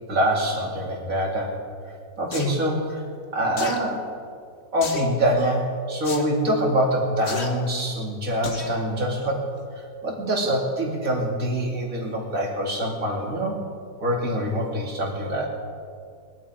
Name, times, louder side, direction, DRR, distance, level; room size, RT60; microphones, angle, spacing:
voice 1, 0.1-1.5 2.2-3.0 3.3-4.0 4.7-9.4 9.7-13.6 14.0-15.5, equal, 45° right, -1 dB, 3.0 m, -25 dB
sound 1, 2.3-2.5 3.6-3.8 4.8-5.1 6.0-6.2 7.2-7.5 8.4-8.7 9.2-9.3, left 4 dB, 40° left, 1.4 m, -32 dB
20.0 x 12.0 x 5.1 m, 2.2 s
omnidirectional pair, 2.0 m